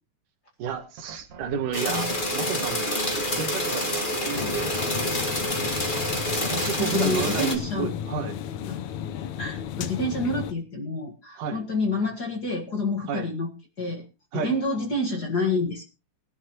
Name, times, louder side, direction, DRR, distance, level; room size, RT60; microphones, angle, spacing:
voice 1, 0.6-4.8 6.3-8.4 11.4-11.6 13.1-13.3 14.3-14.5, right 7 dB, 75° right, 7 dB, 2.9 m, -32 dB
sound 1, 0.7-7.3, right 3 dB, 60° right, 2.6 m, -45 dB
sound 2, 1.7-7.6, left 1 dB, 20° left, 1.4 m, -27 dB
sound 3, 4.3-10.5, left 9 dB, 70° left, 2.1 m, -34 dB
voice 2, 6.3-8.0 8.7-8.8 9.4-13.5 13.8-14.0 14.3-15.8, left 2 dB, 40° left, 2 dB, 1.6 m, -28 dB
19.5 x 11.5 x 3.0 m, 0.30 s
omnidirectional pair, 3.7 m